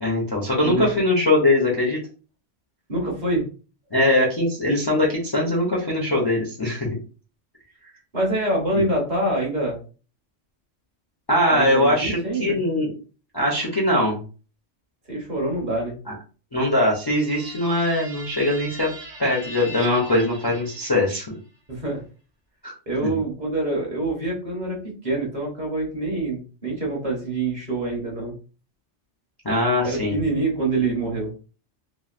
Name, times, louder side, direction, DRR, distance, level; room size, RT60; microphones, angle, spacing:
voice 1, 0.0-2.0 3.9-6.9 11.3-12.9 13.3-14.2 16.1-16.2 16.5-18.9 19.2-21.4 22.6-22.8 29.4-30.2, left 1 dB, 25° left, -3 dB, 0.5 m, -21 dB
voice 2, 2.9-3.5 8.1-9.8 11.5-12.6 15.1-16.0 21.7-22.0 22.9-28.3 29.8-31.3, right 2 dB, 40° right, -1 dB, 1.0 m, -25 dB
sound 1, 16.6-21.4, right 1 dB, 75° right, 1.2 m, -41 dB
3.0 x 2.4 x 2.4 m, 0.36 s
omnidirectional pair, 1.3 m